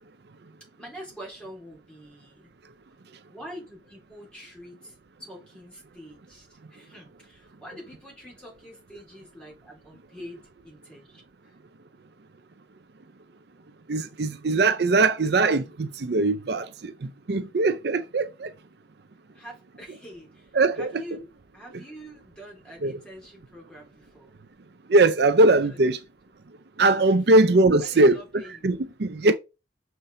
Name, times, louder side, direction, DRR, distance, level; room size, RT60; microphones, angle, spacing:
voice 1, 0.8-2.6 3.3-11.6 19.3-24.3 25.4-26.0 27.3-28.7 29.2-29.3, equal, 5° left, 3.9 m, -45 dB
voice 2, 13.9-18.5 20.6-20.9 22.8-22.9 24.9-26.0 26.8-28.2 28.6-29.3, right 2 dB, 60° right, 0.5 m, -21 dB
6.8 x 5.7 x 3.8 m
head